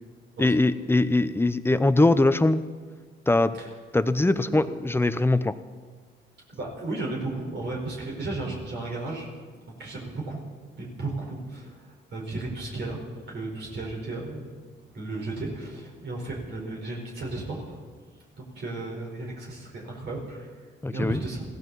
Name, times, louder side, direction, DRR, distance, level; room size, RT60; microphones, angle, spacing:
voice 1, 0.4-2.6 3.3-3.6 3.9-5.6 20.8-21.2, left 2 dB, 10° left, 12 dB, 0.7 m, -22 dB
voice 2, 6.5-9.3 9.8-10.4 10.8-13.0 13.3-14.5 14.9-17.8 18.4-20.5 20.9-21.4, right 2 dB, 60° right, -2 dB, 4.7 m, -34 dB
22.0 x 16.0 x 4.1 m, 1.5 s
cardioid pair, 90°, 20 cm